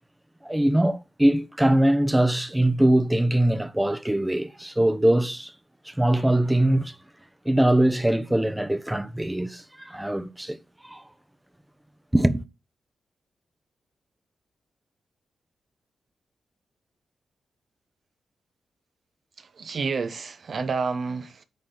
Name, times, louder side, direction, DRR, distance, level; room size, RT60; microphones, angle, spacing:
voice 1, 0.4-5.5 5.9-6.9 7.4-10.6 10.8-11.0 12.1-12.4, right 1 dB, 10° right, 0.9 m, -22 dB
voice 2, 19.4-21.4, right 4 dB, 60° right, 1.1 m, -29 dB
10.5 x 4.2 x 4.0 m
cardioid pair, 75°, 0 cm